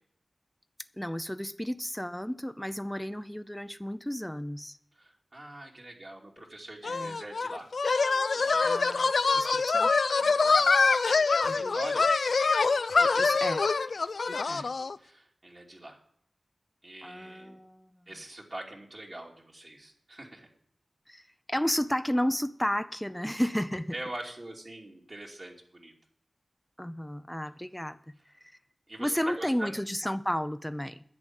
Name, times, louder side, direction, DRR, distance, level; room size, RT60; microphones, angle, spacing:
voice 1, 1.0-4.8 6.8-7.2 8.6-9.9 11.4-11.8 13.0-13.6 14.3-14.6 17.0-17.9 21.1-23.9 26.8-28.0 28.4-28.5 29.0-31.0, equal, 10° left, 11 dB, 0.5 m, -33 dB
voice 2, 4.9-7.7 8.3-8.9 10.1-10.7 11.0-12.1 14.4-14.7 15.0-16.0 16.8-17.6 18.1-20.5 23.9-25.9 28.9-29.7, right 1 dB, 50° right, -2 dB, 2.7 m, -43 dB
sound 1, 6.8-15.0, left 4 dB, 80° left, 0.4 m, -25 dB
11.0 x 7.7 x 7.2 m, 0.66 s
cardioid pair, 45°, 0 cm